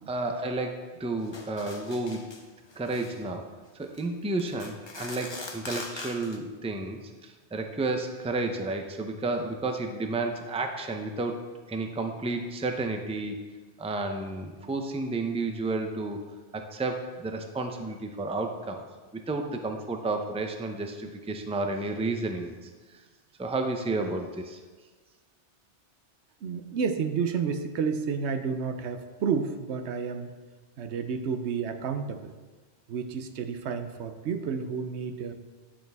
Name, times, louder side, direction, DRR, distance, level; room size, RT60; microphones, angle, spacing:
voice 1, 0.1-2.3 2.8-3.5 3.7-11.4 11.7-13.4 13.8-16.2 16.5-18.8 19.1-22.7 23.4-24.6, right 2 dB, 10° right, 5 dB, 0.4 m, -31 dB
sound 1, 1.3-2.4 2.7-3.2 3.8-4.0 4.4-6.4, left 2 dB, 30° left, 0.8 m, -41 dB
voice 2, 26.4-30.4 30.8-32.3 32.9-35.3, right 6 dB, 85° right, 8 dB, 1.0 m, -31 dB
11.0 x 6.5 x 3.5 m, 1.3 s
omnidirectional pair, 1.1 m